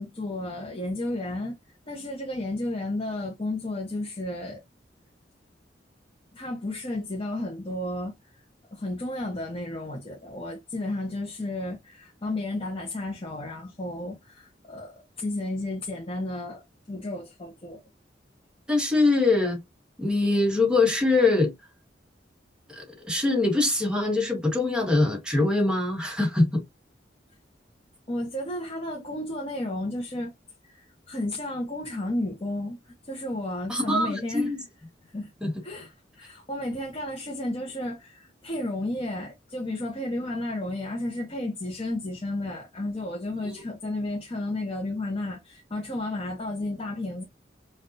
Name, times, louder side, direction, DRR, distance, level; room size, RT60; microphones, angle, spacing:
voice 1, 0.0-4.6 6.3-8.1 8.7-16.6 16.9-17.8 28.1-30.3 30.6-34.5 35.0-35.3 35.6-47.2, left 1 dB, 30° left, 0.9 m, -32 dB
voice 2, 18.7-19.6 20.0-21.5 22.8-26.6 33.7-34.6 35.4-35.5 43.4-43.5, left 2 dB, 5° right, 1.4 m, -23 dB
5.3 x 2.6 x 2.7 m
head